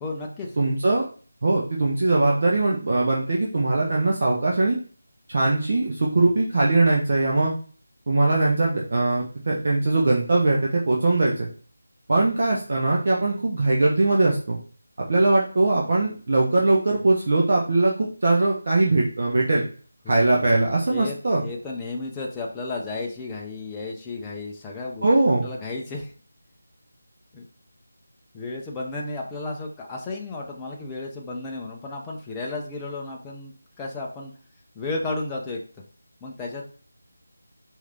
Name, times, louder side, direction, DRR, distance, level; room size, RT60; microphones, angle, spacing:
voice 1, 0.0-0.6 20.1-20.3 20.9-21.2 21.4-25.1 25.4-26.1 27.3-27.4 28.3-33.5 33.8-34.3 34.8-35.6 36.2-36.6, left 2 dB, 10° left, -2 dB, 0.6 m, -33 dB
voice 2, 0.6-1.0 1.4-4.8 5.3-7.5 8.1-11.5 12.1-14.6 15.0-19.6 20.1-21.4 25.0-25.5, right 2 dB, 45° right, -2 dB, 0.9 m, -21 dB
4.7 x 2.7 x 3.4 m, 0.41 s
figure-of-eight pair, 160°, 0 cm